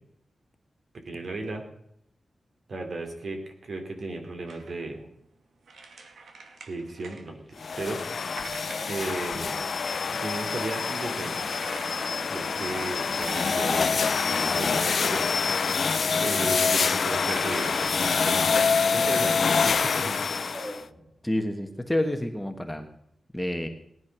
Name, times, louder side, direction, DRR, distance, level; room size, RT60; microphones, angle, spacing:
voice 1, 0.9-1.6 2.7-5.1 6.7-8.0 8.9-9.6 10.2-11.5 12.2-15.4 15.8-18.5 18.9-19.4 19.8-20.1, right 2 dB, 55° right, 4 dB, 3.1 m, -35 dB
sound 1, 4.5-4.9 5.7-7.3 7.6-10.3 11.2-12.2 12.5-14.7 15.5-16.5 16.8-19.8, right 4 dB, 85° right, 2.1 m, -44 dB
sound 2, 6.9-7.7 8.2-21.4, equal, 30° right, 3.7 m, -46 dB
sound 3, 7.6-20.8, left 5 dB, 60° left, 0.5 m, -26 dB
voice 2, 21.2-22.9 23.3-23.7, left 1 dB, 5° left, 5 dB, 1.4 m, -28 dB
18.0 x 10.5 x 6.1 m, 0.74 s
wide cardioid pair, 135°, 0 cm